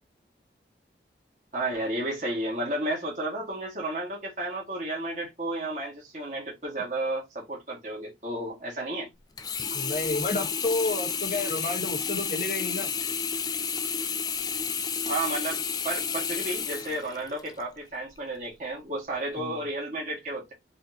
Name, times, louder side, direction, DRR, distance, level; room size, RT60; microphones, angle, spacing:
voice 1, 1.5-9.1 15.1-20.5, right 1 dB, 45° right, 1.8 m, -32 dB
Sink (filling or washing), 9.4-17.6 18.2-18.3, left 6 dB, 20° left, 0.4 m, -31 dB
voice 2, 9.7-12.9 19.4-19.6, left 2 dB, 50° left, 1.2 m, -30 dB
4.1 x 3.6 x 2.8 m
head